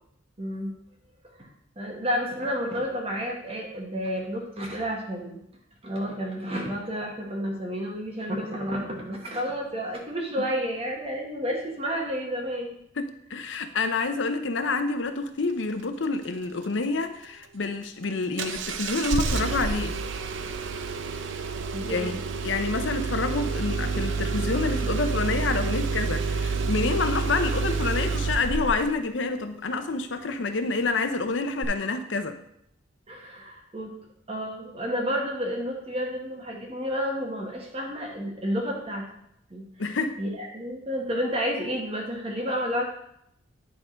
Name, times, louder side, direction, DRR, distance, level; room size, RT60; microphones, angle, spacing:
voice 1, 0.4-0.7 1.4-1.5 1.8-5.4 5.8-12.8 21.7-22.2 33.1-33.9 34.3-39.0 39.5-39.7 40.2-42.8, equal, 30° right, 0 dB, 1.3 m, -30 dB
voice 2, 13.0-19.9 21.8-22.1 22.4-32.4 39.8-40.1, left 3 dB, 70° left, 8 dB, 0.7 m, -28 dB
Engine starting, 18.4-29.0 31.6-31.7, right 4 dB, 70° right, 0.6 m, -28 dB
10.0 x 3.7 x 5.1 m, 0.75 s
head